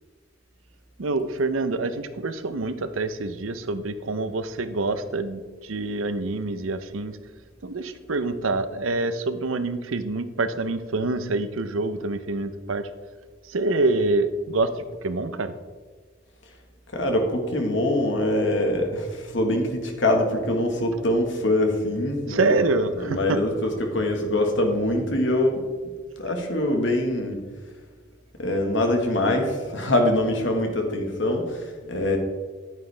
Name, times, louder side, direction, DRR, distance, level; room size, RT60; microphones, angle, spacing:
voice 1, 1.0-7.2 7.6-12.9 13.5-15.5 22.3-23.4, right 3 dB, 85° right, 11 dB, 0.7 m, -26 dB
voice 2, 16.9-22.6 23.0-25.6 26.2-27.4 28.4-31.6 31.9-32.2, left 1 dB, 65° left, 3 dB, 1.5 m, -23 dB
9.5 x 9.1 x 3.4 m, 1.5 s
head